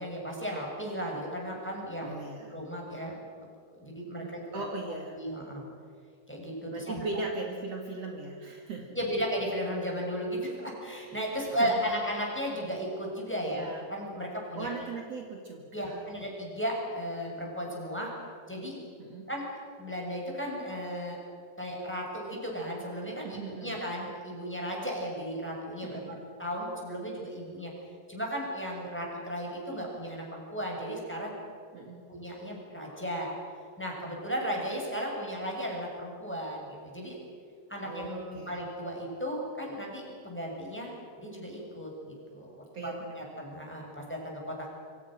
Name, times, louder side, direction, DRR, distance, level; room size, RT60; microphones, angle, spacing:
voice 1, 0.0-2.1 2.5-4.6 5.1-5.6 6.3-7.0 8.9-14.7 15.7-18.1 18.5-18.8 19.3-19.4 19.8-21.2 21.6-27.7 28.1-31.3 32.1-33.3 33.8-37.2 37.7-40.9 41.2-44.7, equal, 5° left, -2 dB, 6.8 m, -35 dB
voice 2, 2.0-2.6 4.2-5.2 6.7-9.0 11.3-11.7 13.4-13.8 14.6-16.0 19.0-19.3 23.2-23.8 25.8-26.4 31.7-32.0 37.8-38.5 42.7-43.4, right 3 dB, 55° right, 1 dB, 3.0 m, -39 dB
27.0 x 25.0 x 6.5 m, 2.3 s
omnidirectional pair, 3.6 m